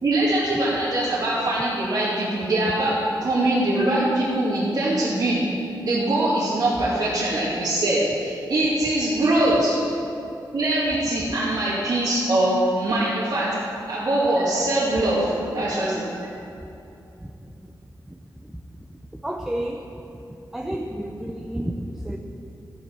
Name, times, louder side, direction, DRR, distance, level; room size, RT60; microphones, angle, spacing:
voice 1, 0.0-5.4 5.8-9.8 10.5-13.5 13.9-16.3, right 1 dB, 60° right, -10 dB, 2.2 m, -22 dB
voice 2, 19.2-19.9 20.1-20.2 20.5-22.2, right 1 dB, 5° right, 2 dB, 0.5 m, -30 dB
13.5 x 9.2 x 4.7 m, 2.8 s
wide cardioid pair, 170°, 8 cm